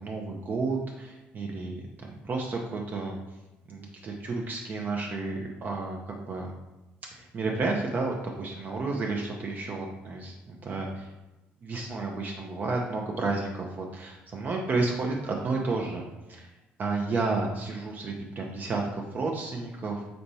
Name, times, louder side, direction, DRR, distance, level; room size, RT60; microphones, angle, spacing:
voice 1, 0.0-3.2 3.7-6.5 7.1-11.1 11.6-16.0 16.3-16.5 16.8-20.0, right 3 dB, 40° right, 0 dB, 0.6 m, -31 dB
4.1 x 3.3 x 2.7 m, 1.0 s
cardioid pair, 90°, 4 cm